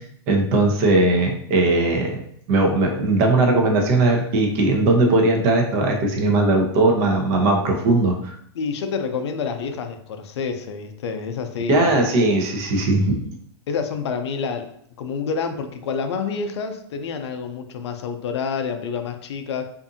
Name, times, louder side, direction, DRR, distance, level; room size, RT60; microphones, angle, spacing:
voice 1, 0.3-2.2 2.5-8.3 11.7-13.2, right 2 dB, 45° right, 1 dB, 0.7 m, -19 dB
voice 2, 8.5-11.9 13.7-14.7 15.0-19.6, left 5 dB, 80° left, 7 dB, 0.4 m, -28 dB
2.6 x 2.5 x 2.6 m, 0.68 s
hypercardioid pair, 130°, 14 cm